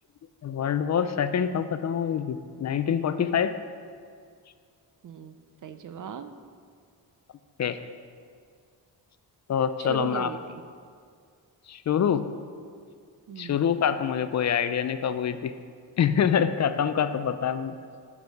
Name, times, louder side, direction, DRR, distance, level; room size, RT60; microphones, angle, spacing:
voice 1, 0.4-3.6 7.6-7.8 9.5-10.3 11.7-12.3 13.4-15.5 16.0-17.7, left 8 dB, 45° left, 11 dB, 0.5 m, -25 dB
voice 2, 5.0-5.4 5.6-6.3 9.8-10.6 13.3-13.6, right 7 dB, 50° right, 10 dB, 0.6 m, -38 dB
10.5 x 6.1 x 4.8 m, 2.2 s
cardioid pair, 100°, 39 cm